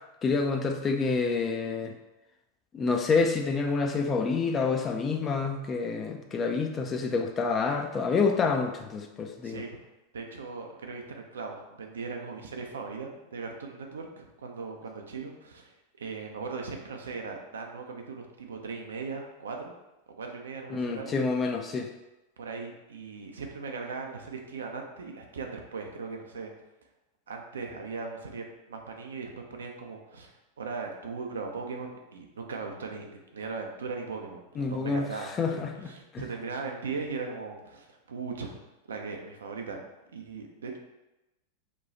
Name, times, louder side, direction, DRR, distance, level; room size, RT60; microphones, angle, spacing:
voice 1, 0.2-1.9 2.7-9.6 20.7-21.9 34.6-36.2, left 4 dB, 25° left, 4 dB, 0.4 m, -28 dB
voice 2, 9.4-9.8 10.1-19.8 20.1-21.2 22.4-26.5 27.3-30.3 30.6-38.6 38.9-39.8 40.1-40.8, right 4 dB, 65° right, 2 dB, 0.5 m, -38 dB
3.0 x 2.3 x 3.9 m, 0.99 s
figure-of-eight pair, 90°, 0 cm